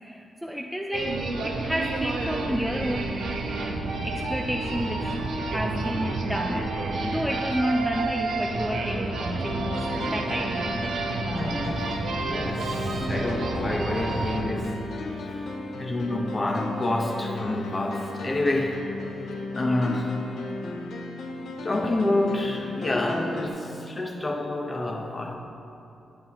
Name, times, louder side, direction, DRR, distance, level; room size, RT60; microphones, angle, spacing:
voice 1, 0.0-3.2 4.0-10.7 19.6-20.0, equal, ahead, 1 dB, 0.4 m, -31 dB
sound 1, 0.9-14.4, right 3 dB, 80° right, 0.7 m, -30 dB
sound 2, 9.3-23.5, left 2 dB, 75° left, 0.7 m, -35 dB
voice 2, 11.0-14.8 15.2-15.3 15.8-18.8 19.5-20.2 21.6-25.4, left 2 dB, 30° left, 2 dB, 0.8 m, -28 dB
9.3 x 7.5 x 2.9 m, 2.8 s
cardioid pair, 110°, 0 cm